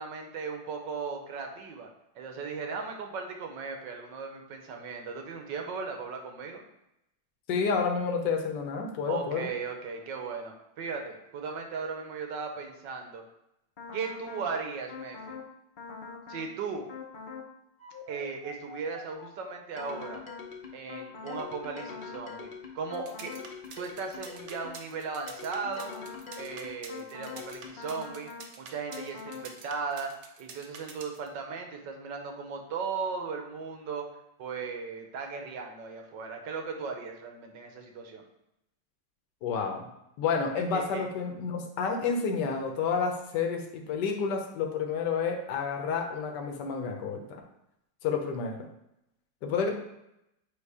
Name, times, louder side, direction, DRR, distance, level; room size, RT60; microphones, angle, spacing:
voice 1, 0.0-1.9 2.1-6.7 9.1-13.2 13.9-15.4 16.3-16.9 18.1-20.2 20.7-23.3 23.8-25.9 26.4-28.3 28.6-30.1 30.4-34.1 34.4-38.2 40.7-41.1 49.6-49.7, right 5 dB, 75° right, 3 dB, 1.5 m, -37 dB
voice 2, 7.5-9.5 39.4-39.9 40.2-47.2 48.0-48.7 49.4-49.7, left 5 dB, 70° left, 3 dB, 1.4 m, -30 dB
sound 1, 13.8-14.5 14.9-15.5 15.8-16.5 16.9-17.5 17.8-24.9 25.3-28.5 28.9-29.5, left 5 dB, 45° left, 0.7 m, -43 dB
sound 2, 22.9-31.3, right 6 dB, 60° right, 1.0 m, -47 dB
8.1 x 2.7 x 4.8 m, 0.84 s
omnidirectional pair, 2.0 m